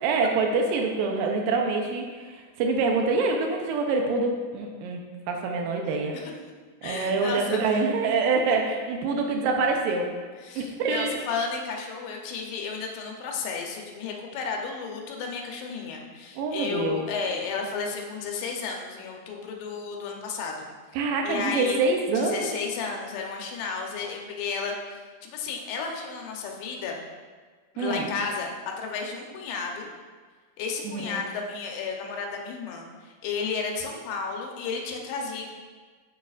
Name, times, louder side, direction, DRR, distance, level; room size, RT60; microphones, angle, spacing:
voice 1, 0.0-6.2 6.8-10.1 10.6-11.2 16.4-17.0 20.9-22.5 27.8-28.1 30.8-31.2, right 4 dB, 85° right, 2 dB, 2.0 m, -26 dB
voice 2, 6.8-7.8 10.4-20.7 21.2-21.9 22.1-27.0 27.7-29.9 30.6-35.5, left 5 dB, 90° left, 1 dB, 3.0 m, -33 dB
13.0 x 4.7 x 2.4 m, 1.5 s
omnidirectional pair, 4.7 m